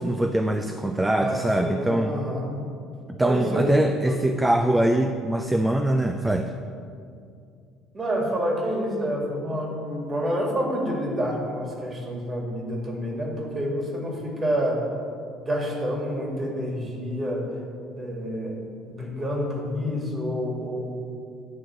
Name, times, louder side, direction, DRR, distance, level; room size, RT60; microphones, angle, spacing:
voice 1, 0.0-2.1 3.1-6.5, right 1 dB, 10° right, 5 dB, 0.5 m, -23 dB
voice 2, 1.2-2.6 3.2-4.2 7.9-14.9 15.4-17.5 18.0-20.9, equal, 30° right, -1 dB, 2.2 m, -28 dB
10.5 x 3.7 x 6.9 m, 2.4 s
figure-of-eight pair, 60°, 0 cm